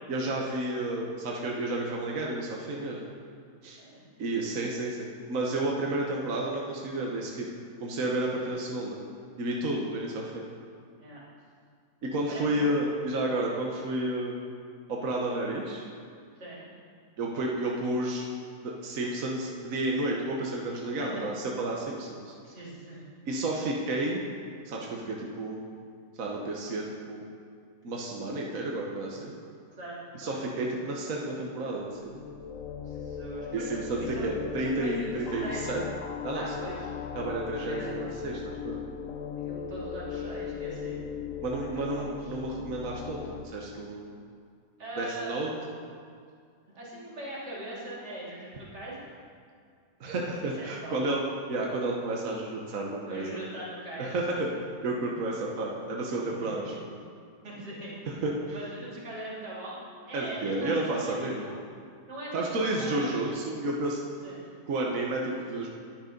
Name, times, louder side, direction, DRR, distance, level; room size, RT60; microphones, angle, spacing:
voice 1, 0.1-3.1 3.6-3.8 4.2-7.5 7.8-9.0 9.4-10.5 12.0-14.4 14.9-15.8 17.2-18.2 18.6-22.3 23.3-24.2 24.6-25.6 26.2-27.2 27.8-29.3 30.1-32.2 33.5-35.8 36.2-36.5 37.1-38.8 41.4-44.1 44.9-45.8 50.0-53.4 54.0-54.5 54.8-56.9 58.1-58.6 60.1-61.6 62.3-64.0 64.7-65.7, right 2 dB, 55° right, -2 dB, 1.5 m, -31 dB
voice 2, 12.3-12.8 16.4-16.7 21.0-21.2 22.4-23.1 29.8-30.8 32.9-35.1 35.4-35.8 36.3-36.9 37.6-38.1 39.4-41.0 41.5-42.3 44.8-45.3 46.7-49.1 50.5-51.0 53.1-54.5 55.1-55.2 56.4-56.5 57.4-58.0 58.5-59.8 60.1-61.6 62.1-63.1 64.2-64.5, right 1 dB, 80° right, -7 dB, 3.7 m, -41 dB
sound 1, 31.9-43.4, left 7 dB, 60° left, 1.0 m, -38 dB
11.0 x 10.5 x 5.2 m, 2.2 s
omnidirectional pair, 1.8 m